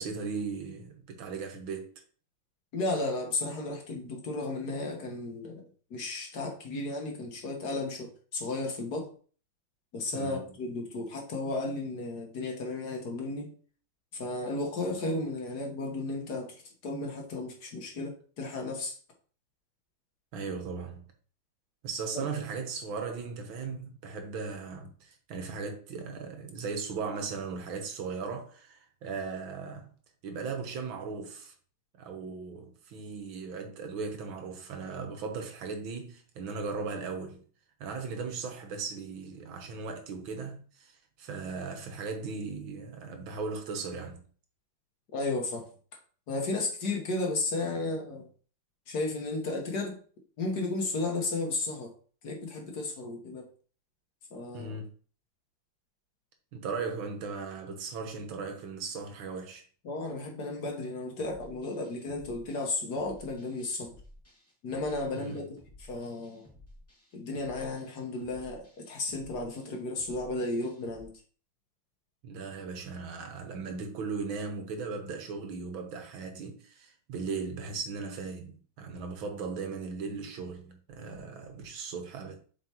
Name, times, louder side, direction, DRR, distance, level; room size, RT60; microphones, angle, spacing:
voice 1, 0.0-1.9 10.1-10.6 20.3-21.1 21.8-29.9 30.2-31.5 32.0-37.4 37.8-44.2 54.5-54.9 56.5-59.6 65.1-65.5 72.2-82.4, right 4 dB, 75° right, 1.9 m, -37 dB
voice 2, 2.7-5.7 5.9-9.1 9.9-13.5 14.2-19.0 22.1-22.3 45.1-45.7 46.3-48.3 48.9-50.0 50.4-51.9 52.2-53.5 54.3-54.8 59.9-63.9 64.6-65.6 65.9-66.5 67.1-71.1, left 2 dB, 55° left, 1.7 m, -34 dB
sound 1, 61.2-71.0, left 1 dB, 5° left, 2.0 m, -55 dB
7.5 x 4.7 x 2.9 m
omnidirectional pair, 2.2 m